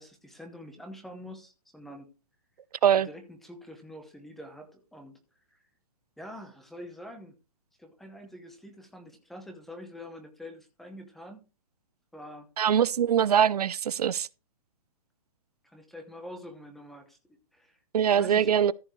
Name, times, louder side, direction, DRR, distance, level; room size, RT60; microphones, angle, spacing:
voice 1, 0.0-2.1 3.0-5.2 5.5-5.6 6.2-7.3 7.8-11.4 12.1-12.5 15.6-18.6, equal, ahead, 0.8 m, -46 dB
voice 2, 12.6-14.3 17.9-18.7, right 9 dB, 85° right, 0.6 m, -23 dB
14.0 x 7.0 x 3.1 m
hypercardioid pair, 175°, 19 cm